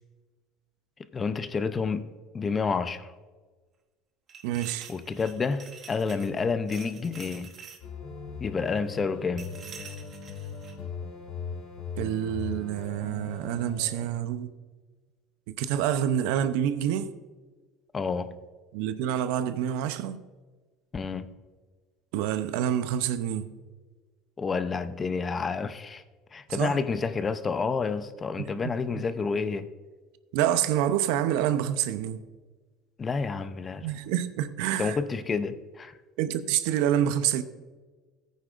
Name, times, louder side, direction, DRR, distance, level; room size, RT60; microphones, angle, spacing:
voice 1, 1.0-3.1 4.9-7.5 8.4-9.6 17.9-18.4 20.9-21.3 24.4-26.0 26.3-29.7 33.0-33.9 34.8-35.9, left 5 dB, 25° left, 0.6 m, -29 dB
sound 1, 4.3-6.4 6.7-7.8 9.4-10.7, right 6 dB, 40° right, 1.4 m, -47 dB
voice 2, 4.4-4.9 12.0-14.5 15.5-17.1 18.7-20.2 22.1-23.5 26.5-26.8 28.4-28.7 30.3-32.2 33.8-35.0 36.2-37.4, right 10 dB, 80° right, 0.6 m, -27 dB
sound 2, 7.8-14.1, left 5 dB, 65° left, 2.8 m, -39 dB
15.0 x 9.4 x 2.5 m
supercardioid pair, 110°, 0 cm